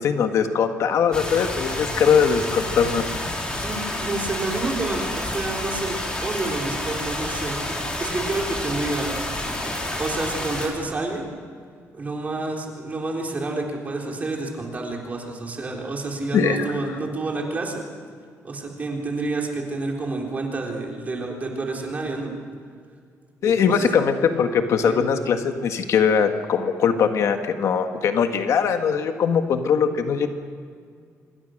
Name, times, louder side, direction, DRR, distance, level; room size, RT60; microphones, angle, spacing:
voice 1, 0.0-3.0 16.3-16.7 23.4-30.3, left 7 dB, 65° left, 6 dB, 1.6 m, -21 dB
sound 1, 1.1-10.7, left 1 dB, 20° left, 4.2 m, -29 dB
voice 2, 3.6-9.3 10.0-11.3 11.9-17.8 18.4-22.3 23.4-23.9 24.8-25.0, right 3 dB, 30° right, 0 dB, 4.0 m, -29 dB
26.0 x 21.5 x 6.5 m, 2.1 s
cardioid pair, 145°, 6 cm